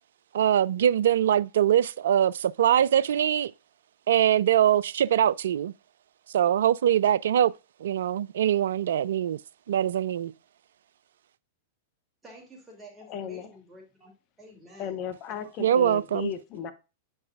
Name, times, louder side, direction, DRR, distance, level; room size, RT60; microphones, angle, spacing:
voice 1, 0.3-3.5 4.1-5.7 6.3-7.5 7.8-9.4 9.7-10.3 15.6-16.3, right 10 dB, 70° right, 0.3 m, -23 dB
voice 2, 12.2-14.1 14.4-15.0 15.3-15.5, equal, 15° right, 2.5 m, -49 dB
voice 3, 13.0-13.5 14.8-16.7, left 8 dB, 40° left, 0.9 m, -35 dB
8.5 x 5.4 x 2.3 m
hypercardioid pair, 100°, 0 cm